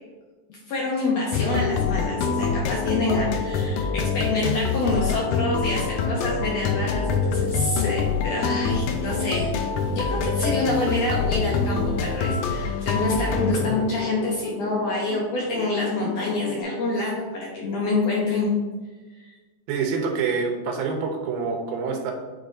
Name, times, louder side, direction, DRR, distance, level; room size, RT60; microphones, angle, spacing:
voice 1, 0.5-9.5 9.9-18.5 19.2-19.3, left 2 dB, 70° left, -3 dB, 1.7 m, -27 dB
sound 1, 1.3-16.6, left 5 dB, 90° left, 1.7 m, -26 dB
voice 2, 19.7-22.1, right 5 dB, 85° right, 3 dB, 2.7 m, -26 dB
8.9 x 4.8 x 2.6 m, 1.2 s
omnidirectional pair, 4.0 m